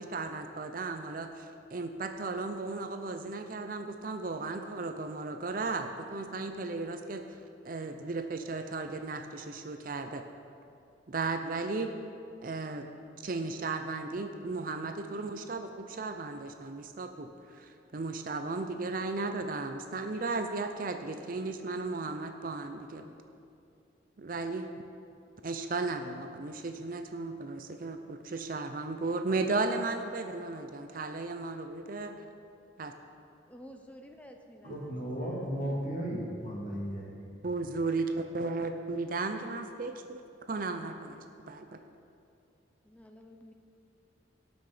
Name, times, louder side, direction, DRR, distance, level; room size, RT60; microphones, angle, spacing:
voice 1, 0.0-7.4 7.6-10.2 11.1-11.9 12.4-12.9 13.2-23.1 24.2-24.7 25.4-32.1 32.8-32.9 34.7-34.8 37.4-38.1 38.3-40.2 40.5-41.8, right 3 dB, 45° right, 7 dB, 0.5 m, -35 dB
voice 2, 33.5-35.7 42.8-43.5, equal, 5° left, 4 dB, 0.6 m, -52 dB
voice 3, 34.6-37.2, equal, 40° left, -3 dB, 2.3 m, -35 dB
18.0 x 6.1 x 5.0 m, 2.5 s
head